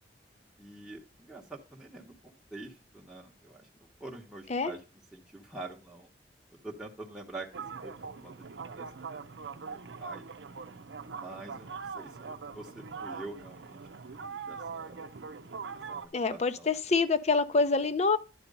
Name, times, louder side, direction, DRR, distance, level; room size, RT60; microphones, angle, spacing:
voice 1, 0.6-3.7 4.0-4.8 5.1-6.1 6.5-7.9 8.2-9.1 9.5-10.2 11.1-13.8 14.3-15.0 15.9-16.7, right 2 dB, 5° right, 0.9 m, -46 dB
sound 1, 7.5-16.1, right 5 dB, 90° right, 0.6 m, -42 dB
voice 2, 16.1-18.2, left 4 dB, 40° left, 0.6 m, -26 dB
10.5 x 4.4 x 5.2 m
head